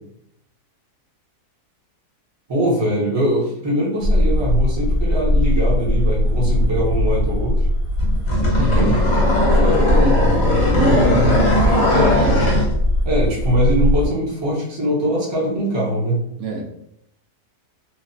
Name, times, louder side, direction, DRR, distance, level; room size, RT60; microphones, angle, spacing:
voice 1, 2.5-7.7 8.7-9.0 13.0-16.2, right 1 dB, 25° right, -5 dB, 0.6 m, -21 dB
sound 1, 4.0-14.1, left 1 dB, 80° right, 1.2 m, -20 dB
sound 2, 8.0-12.7, left 1 dB, 60° left, 1.2 m, -18 dB
voice 2, 8.6-9.0 9.5-10.3 10.6-12.5 16.4-16.6, right 2 dB, 60° right, 0 dB, 0.8 m, -26 dB
3.0 x 2.3 x 2.6 m, 0.75 s
omnidirectional pair, 1.7 m